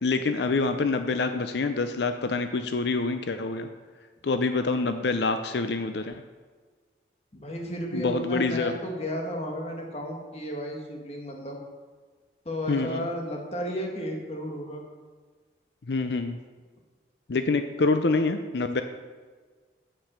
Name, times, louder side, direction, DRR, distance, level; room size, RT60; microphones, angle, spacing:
voice 1, 0.0-3.7 4.2-6.2 7.9-8.8 12.7-13.1 15.9-16.4 17.3-18.8, left 3 dB, 70° left, 8 dB, 0.6 m, -26 dB
voice 2, 7.3-11.6 12.4-14.8, equal, 35° left, 0 dB, 1.6 m, -33 dB
8.9 x 7.5 x 6.7 m, 1.5 s
head